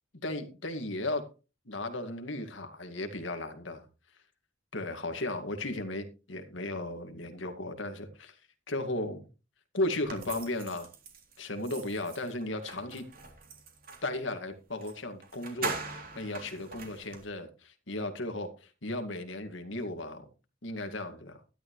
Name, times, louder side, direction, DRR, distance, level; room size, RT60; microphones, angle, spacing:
voice 1, 0.2-1.3 1.7-3.9 4.7-8.4 8.7-9.3 9.7-10.9 11.4-13.1 14.0-20.3 20.6-21.4, left 2 dB, 80° left, 2.1 m, -35 dB
sound 1, 10.1-14.1 14.8-14.9 15.2-17.2, right 3 dB, 50° right, 3.3 m, -41 dB
12.5 x 12.0 x 3.2 m
head